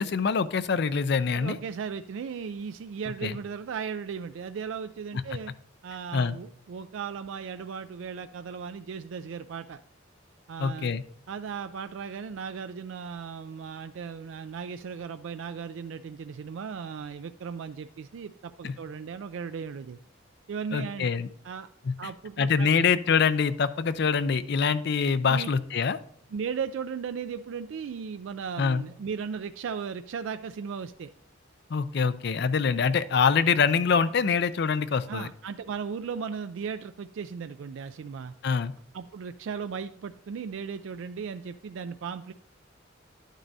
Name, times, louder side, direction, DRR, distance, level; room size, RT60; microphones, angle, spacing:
voice 1, 0.0-1.6 3.2-3.3 6.1-6.3 10.6-11.0 18.6-18.7 20.7-21.3 21.9-22.0 22.4-26.0 28.6-28.8 31.7-35.3 38.4-38.7, left 5 dB, 55° left, 14 dB, 0.4 m, -25 dB
voice 2, 1.3-5.5 5.8-9.8 10.5-11.0 11.3-20.0 20.5-21.1 21.4-21.7 22.0-22.7 25.3-25.5 26.3-31.1 35.1-38.3 38.9-42.3, right 6 dB, 75° right, 10 dB, 0.3 m, -36 dB
11.5 x 9.1 x 2.7 m, 0.66 s
head